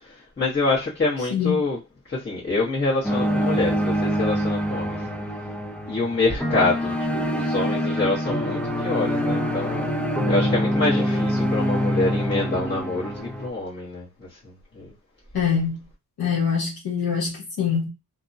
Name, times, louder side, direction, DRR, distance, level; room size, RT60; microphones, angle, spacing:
voice 1, 0.4-1.8 2.1-5.0 5.8-9.9 10.3-14.9, left 3 dB, 30° left, 1.2 m, -26 dB
sound 1, 3.0-13.5, equal, 5° left, 0.4 m, -25 dB
voice 2, 15.3-15.8 16.2-17.9, left 7 dB, 90° left, 1.0 m, -24 dB
2.7 x 2.2 x 2.6 m
wide cardioid pair, 100°, 35 cm